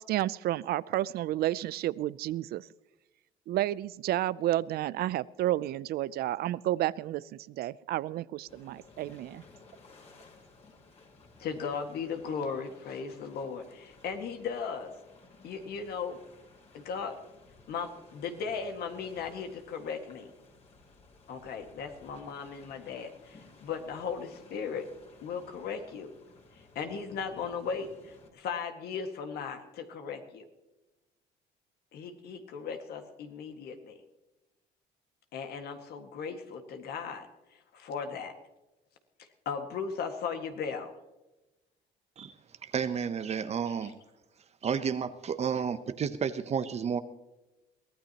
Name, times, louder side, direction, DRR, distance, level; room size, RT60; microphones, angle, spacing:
voice 1, 0.0-2.6 3.5-9.4, right 14 dB, 65° right, 21 dB, 0.5 m, -31 dB
sound 1, 8.5-28.3, left 3 dB, 40° left, 3.4 m, -57 dB
voice 2, 11.4-14.9 15.4-16.2 16.7-17.2 17.7-20.3 21.3-24.8 25.2-26.1 26.8-30.4 31.9-34.0 35.3-37.3 37.7-38.3 39.5-40.9, left 6 dB, 70° left, 5 dB, 1.9 m, -37 dB
voice 3, 42.6-43.9 44.6-47.0, right 7 dB, 40° right, 11 dB, 0.8 m, -31 dB
23.0 x 15.5 x 3.0 m, 1.0 s
cardioid pair, 110°, 17 cm